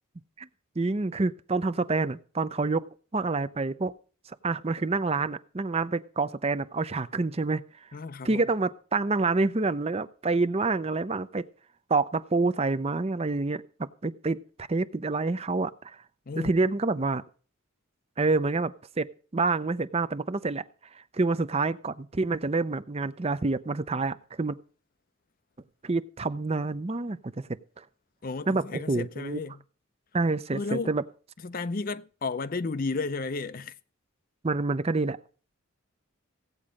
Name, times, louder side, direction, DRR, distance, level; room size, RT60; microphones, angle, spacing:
voice 1, 0.8-2.9 3.1-3.9 4.3-7.6 8.2-11.5 11.9-16.0 16.4-17.2 18.2-20.6 20.9-24.6 25.8-27.5 27.8-27.9 28.5-29.4 30.1-31.0 34.4-35.2, right 3 dB, 30° right, 0.5 m, -27 dB
voice 2, 7.9-8.4 16.3-16.5 28.2-29.6 30.5-31.0 31.4-33.8, left 3 dB, 40° left, 0.5 m, -33 dB
16.0 x 8.6 x 5.1 m
head